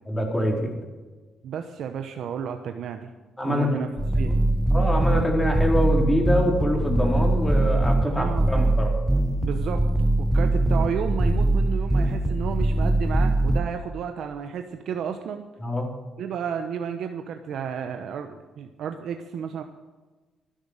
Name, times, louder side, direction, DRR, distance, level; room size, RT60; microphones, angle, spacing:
voice 1, 0.1-0.7 3.4-3.7 4.3-4.4 4.7-9.0 15.6-15.9, equal, 10° left, 0 dB, 4.0 m, -25 dB
voice 2, 1.4-3.1 3.4-3.9 4.2-4.3 8.0-8.7 9.4-9.8 10.2-15.4 16.2-19.6, right 7 dB, 70° right, 6 dB, 0.9 m, -32 dB
sound 1, 4.0-13.6, right 1 dB, 5° right, 1.0 m, -22 dB
12.0 x 11.5 x 6.5 m, 1.3 s
cardioid pair, 90°, 0 cm